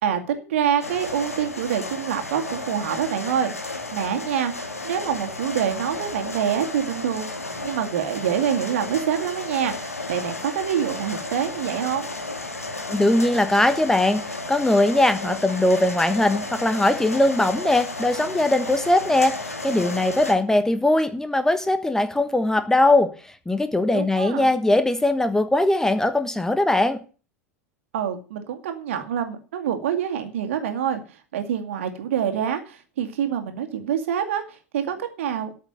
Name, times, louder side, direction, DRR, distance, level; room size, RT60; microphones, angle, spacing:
voice 1, 0.0-7.3 7.6-12.1 23.9-24.5 27.9-35.5, right 8 dB, 60° right, 6 dB, 2.3 m, -26 dB
sound 1, 0.8-20.3, left 2 dB, 85° left, 2.0 m, -33 dB
voice 2, 12.9-23.1 23.5-27.0, left 1 dB, 5° left, 11 dB, 1.3 m, -20 dB
13.5 x 6.7 x 7.0 m, 0.36 s
figure-of-eight pair, 85°, 8 cm